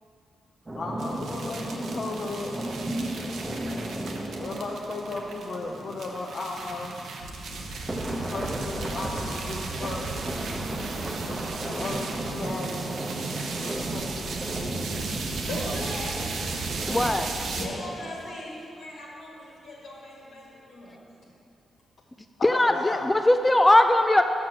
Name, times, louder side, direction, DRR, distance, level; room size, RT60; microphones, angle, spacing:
sound 1, 0.7-7.0 7.7-18.3, right 1 dB, 20° right, 0.9 m, -36 dB
voice 1, 0.8-2.6 4.3-7.0 8.1-10.0 11.3-12.9 13.5-14.8 22.4-23.1, left 3 dB, 60° left, -1 dB, 0.6 m, -35 dB
sound 2, 1.0-17.7, right 3 dB, 75° right, 0.7 m, -35 dB
voice 2, 15.4-16.6 17.5-21.0, left 1 dB, 85° left, -5 dB, 2.0 m, -38 dB
voice 3, 16.9-17.3 22.4-24.2, left 1 dB, 15° left, 6 dB, 0.4 m, -20 dB
6.2 x 5.9 x 6.1 m, 2.7 s
cardioid pair, 65°, 0 cm